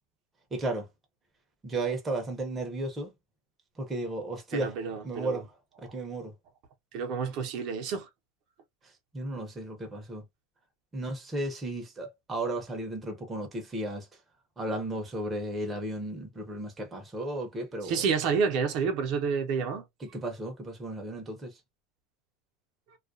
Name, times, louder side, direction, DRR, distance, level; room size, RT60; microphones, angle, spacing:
voice 1, 0.5-0.9 1.6-3.1 3.8-4.8 5.0-5.5 5.8-6.3 8.8-10.2 10.9-14.1 14.6-18.0 20.0-21.6, right 2 dB, 15° right, 0.7 m, -34 dB
voice 2, 4.5-5.4 5.9-6.0 6.9-8.1 17.8-19.8, right 6 dB, 55° right, 0.7 m, -29 dB
2.3 x 2.2 x 2.5 m
supercardioid pair, 145°, 0 cm